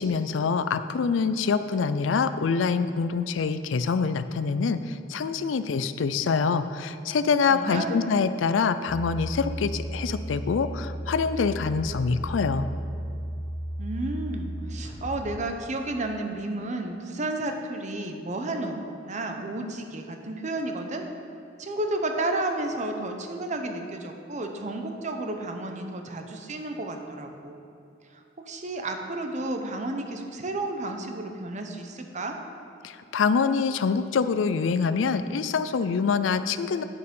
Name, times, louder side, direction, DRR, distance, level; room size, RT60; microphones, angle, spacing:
voice 1, 0.0-12.7 32.8-36.8, left 5 dB, 85° left, 12 dB, 0.4 m, -25 dB
voice 2, 7.5-8.1 13.8-18.8 19.1-21.0 21.6-27.6 28.1-32.4, right 2 dB, 40° right, 4 dB, 0.8 m, -32 dB
sound 1, 8.9-15.3, equal, 25° left, 0.8 m, -34 dB
8.9 x 6.6 x 5.3 m, 2.6 s
head